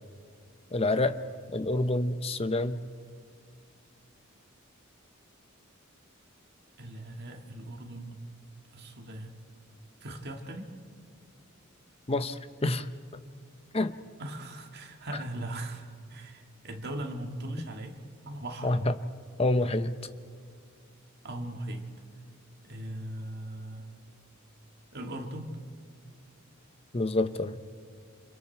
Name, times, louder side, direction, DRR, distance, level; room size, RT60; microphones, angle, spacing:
voice 1, 0.7-1.2 1.5-2.8 12.1-12.9 13.7-13.9 18.6-18.9 19.4-19.9 26.9-27.6, left 2 dB, 30° left, 11 dB, 0.8 m, -27 dB
voice 2, 6.8-8.2 8.7-9.5 10.0-10.7 14.2-18.0 18.2-18.8 21.2-21.9 22.6-23.9 24.9-25.5, right 1 dB, 50° right, 3 dB, 2.0 m, -39 dB
28.0 x 27.5 x 4.6 m, 2.1 s
head